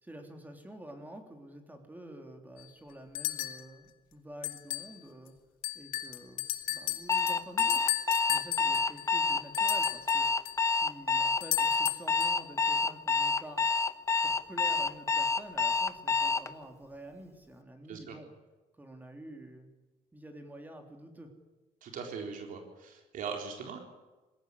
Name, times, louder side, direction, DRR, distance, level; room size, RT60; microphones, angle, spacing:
voice 1, 0.0-5.4 5.7-7.8 8.3-13.6 14.2-18.3 18.8-19.7 20.1-21.3, right 1 dB, 10° right, 4 dB, 3.5 m, -48 dB
sound 1, 2.6-2.7 3.1-3.6 4.4-4.9 5.3-5.4 5.6-10.6 11.4-12.4, left 15 dB, 90° left, 2.3 m, -35 dB
Alarm, 7.1-16.5, left 4 dB, 20° left, 1.1 m, -28 dB
voice 2, 21.8-23.8, right 5 dB, 70° right, 3 dB, 4.0 m, -40 dB
21.0 x 16.5 x 9.8 m, 1.2 s
cardioid pair, 130°, 14 cm